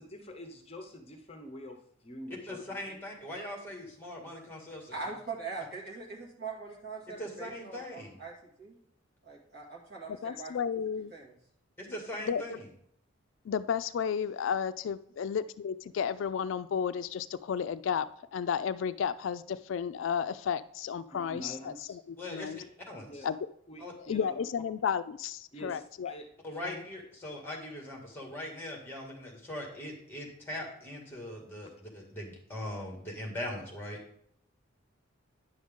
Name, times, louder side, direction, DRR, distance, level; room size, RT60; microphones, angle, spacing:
voice 1, 0.0-3.0 21.1-22.0 23.0-23.3 23.7-24.3 25.5-26.3 26.6-26.8, equal, 30° left, 4 dB, 0.8 m, -46 dB
voice 2, 2.5-5.1 7.2-8.2 11.8-12.7 22.2-23.2 23.8-23.9 26.4-34.0, left 1 dB, 10° left, 0 dB, 1.9 m, -41 dB
voice 3, 4.9-8.8 9.2-10.5 11.1-11.3, right 4 dB, 50° right, -2 dB, 2.3 m, -42 dB
voice 4, 10.2-11.1 12.3-12.6 13.5-18.1 18.3-22.6 23.2-23.4 24.1-26.1, left 7 dB, 65° left, 13 dB, 0.3 m, -33 dB
10.0 x 6.4 x 3.6 m, 0.70 s
head